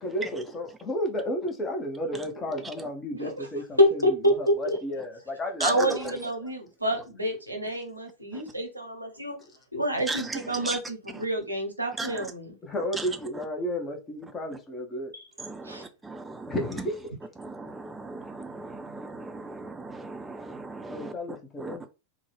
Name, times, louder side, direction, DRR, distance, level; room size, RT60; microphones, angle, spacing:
voice 1, 0.0-3.8 4.3-6.2 12.6-15.1 16.5-17.0 20.9-21.9, equal, 20° left, 0.8 m, -32 dB
voice 2, 3.8-4.8 5.6-9.3 9.7-12.6 15.1-15.3 15.6-15.9, equal, 85° right, 1.0 m, -27 dB
voice 3, 15.4-16.6 17.4-21.1 21.6-21.8, right 3 dB, 10° right, 0.6 m, -36 dB
3.7 x 2.2 x 3.3 m
figure-of-eight pair, 90°, 0 cm